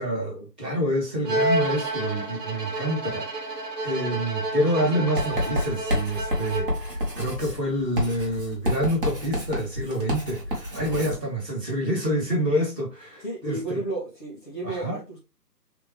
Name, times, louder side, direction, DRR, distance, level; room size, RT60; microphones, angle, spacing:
voice 1, 0.0-13.8 14.6-15.0, equal, 5° right, 1.1 m, -27 dB
Bowed string instrument, 1.3-7.0, right 1 dB, 70° right, 1.2 m, -30 dB
Writing, 5.2-11.2, equal, 30° right, 1.2 m, -29 dB
voice 2, 13.2-15.2, right 2 dB, 30° left, 1.7 m, -33 dB
3.7 x 3.4 x 3.1 m
hypercardioid pair, 175°, 49 cm